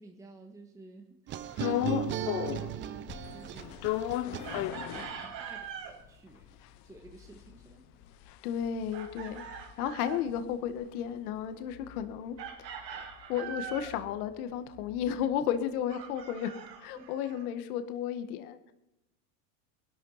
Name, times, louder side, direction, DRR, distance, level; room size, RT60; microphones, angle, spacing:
voice 1, 0.0-3.8 4.2-6.6 6.8-7.8 16.9-17.1, right 3 dB, 5° right, 2 dB, 1.3 m, -53 dB
sound 1, 1.3-5.0, right 10 dB, 25° right, 0.6 m, -37 dB
sound 2, 1.6-2.8 3.1-5.7 6.1-6.2 6.3-10.8 11.2-15.2, left 14 dB, 35° left, 0.7 m, -36 dB
Chicken rooster, 4.4-6.0 8.9-10.3 12.4-14.0 15.9-17.5, right 7 dB, 85° right, 4.1 m, -43 dB
voice 2, 8.4-16.5 16.8-18.7, left 9 dB, 60° left, 9 dB, 1.8 m, -34 dB
20.0 x 12.0 x 5.8 m, 0.86 s
supercardioid pair, 145°, 49 cm